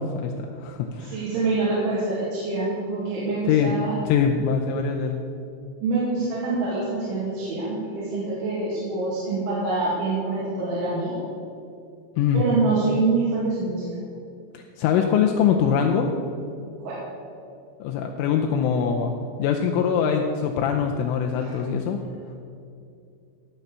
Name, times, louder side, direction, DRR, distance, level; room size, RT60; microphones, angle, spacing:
voice 1, 0.0-1.2 3.5-3.8 4.1-5.2 12.2-12.4 14.5-16.1 17.8-19.1 19.4-22.0, left 7 dB, 80° left, 2 dB, 3.1 m, -23 dB
voice 2, 1.0-4.0 5.8-11.2 12.3-13.8 16.8-17.0 21.4-21.6, right 3 dB, 65° right, -8 dB, 4.7 m, -25 dB
16.0 x 7.2 x 6.8 m, 2.6 s
omnidirectional pair, 5.9 m